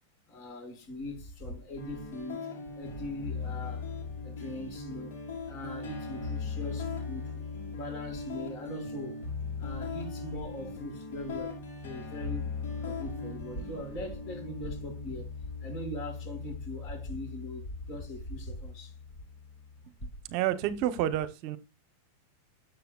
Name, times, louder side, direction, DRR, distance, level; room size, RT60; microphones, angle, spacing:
voice 1, 0.3-2.4 2.8-3.9 4.2-5.1 5.5-7.3 7.7-9.2 9.6-11.6 11.8-15.3 15.6-18.9, left 1 dB, 40° left, 5.9 m, -40 dB
sound 1, 1.8-19.7, left 4 dB, 70° left, 5.3 m, -39 dB
voice 2, 20.3-21.6, right 12 dB, 50° right, 0.8 m, -29 dB
12.0 x 6.7 x 2.3 m
supercardioid pair, 135°, 0 cm